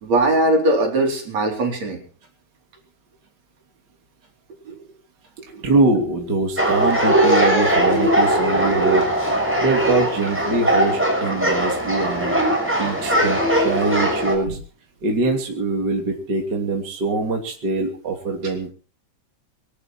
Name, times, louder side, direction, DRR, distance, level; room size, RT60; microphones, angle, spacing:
voice 1, 0.0-2.0 4.5-4.8 5.4-5.7 14.5-14.6 15.2-15.3 18.4-18.5, right 1 dB, 60° right, 2 dB, 5.3 m, -21 dB
voice 2, 5.6-9.0 9.6-12.4 12.8-14.6 15.0-18.7, right 3 dB, 35° right, 2 dB, 3.5 m, -23 dB
sound 1, 6.6-14.3, right 1 dB, 5° right, 6.4 m, -19 dB
24.5 x 12.5 x 4.6 m, 0.42 s
omnidirectional pair, 3.5 m